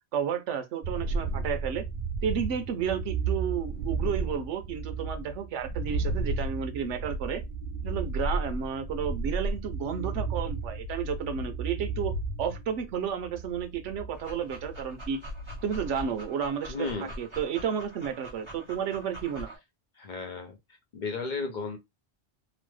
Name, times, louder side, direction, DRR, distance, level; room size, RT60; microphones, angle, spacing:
voice 1, 0.1-1.8 2.2-7.4 7.8-15.2 15.6-19.6, right 7 dB, 90° right, 1.0 m, -32 dB
sound 1, 0.8-16.1, right 3 dB, 60° right, 0.5 m, -33 dB
Dog, 14.1-19.6, right 1 dB, 25° right, 1.2 m, -44 dB
voice 2, 16.7-17.1 20.0-20.6 20.9-21.8, left 4 dB, 55° left, 0.6 m, -34 dB
3.0 x 2.0 x 3.1 m
omnidirectional pair, 1.2 m